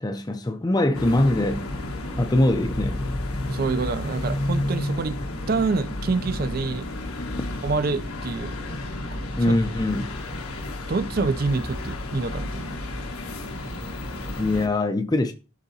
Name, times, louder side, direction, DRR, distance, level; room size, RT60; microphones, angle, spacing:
voice 1, 0.0-1.8 2.2-3.2 9.4-10.1 14.3-15.3, left 1 dB, 20° left, 0.5 m, -23 dB
sound 1, 0.9-14.7, left 1 dB, 85° left, 1.3 m, -31 dB
voice 2, 3.5-5.2 5.5-6.9 7.6-8.5 9.1-9.2 9.5-9.6 10.9-12.8, right 4 dB, 45° right, 0.4 m, -26 dB
11.5 x 3.8 x 2.7 m
head